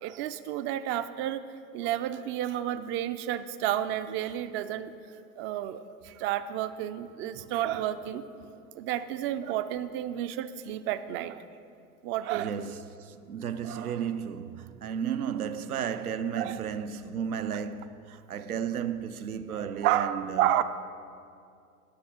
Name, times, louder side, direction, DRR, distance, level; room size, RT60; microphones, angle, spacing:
voice 1, 0.0-1.4 1.7-4.9 5.4-8.3 8.7-11.4 12.0-12.6 16.4-16.6 17.5-17.6 19.8-20.6, right 12 dB, 30° right, 0.4 m, -31 dB
voice 2, 12.1-20.6, right 8 dB, 85° right, 0.7 m, -34 dB
17.0 x 6.5 x 4.4 m
hypercardioid pair, 90°, 43 cm